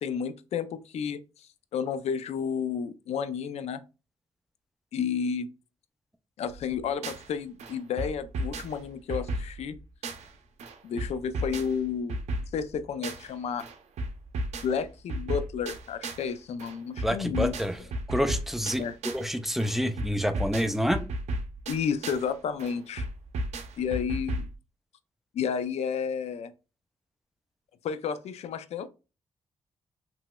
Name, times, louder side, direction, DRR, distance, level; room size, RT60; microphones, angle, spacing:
voice 1, 0.0-3.8 4.9-5.5 6.4-9.7 10.8-12.2 12.5-13.6 14.6-17.6 18.8-19.0 21.7-23.1 23.8-24.5 25.3-26.5 27.8-28.9, left 7 dB, 70° left, 0.4 m, -31 dB
sound 1, 6.5-7.3 7.6-10.3 10.6-13.3 13.6-16.3 16.6-19.3 19.6-22.3 22.6-24.5, right 1 dB, 90° right, 0.5 m, -35 dB
voice 2, 17.0-17.8 18.1-18.8 19.1-21.0, equal, ahead, 0.4 m, -27 dB
3.0 x 2.9 x 2.2 m
cardioid pair, 95°, 11 cm